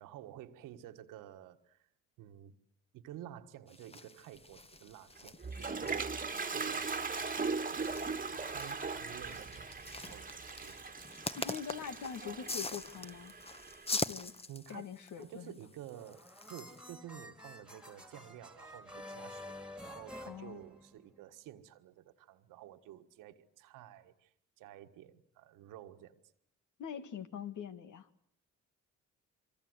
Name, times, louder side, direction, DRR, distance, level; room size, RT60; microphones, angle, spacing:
voice 1, 0.0-1.9 2.2-2.5 2.9-6.2 6.5-7.3 7.6-7.9 8.2-9.7 10.0-10.8 14.5-19.5 19.8-26.2, right 12 dB, 85° right, 8 dB, 1.6 m, -52 dB
sound 1, 3.7-16.8, left 3 dB, 20° left, 1.1 m, -44 dB
Toilet flush, 5.2-14.0, right 4 dB, 25° right, 1.6 m, -39 dB
voice 2, 11.4-13.3 13.9-14.3 14.7-15.5 20.3-20.6 26.8-28.1, left 7 dB, 70° left, 10 dB, 1.9 m, -43 dB
sound 2, 15.9-21.2, left 1 dB, 5° right, 2.5 m, -50 dB
26.5 x 24.0 x 8.1 m, 0.68 s
supercardioid pair, 65°, 31 cm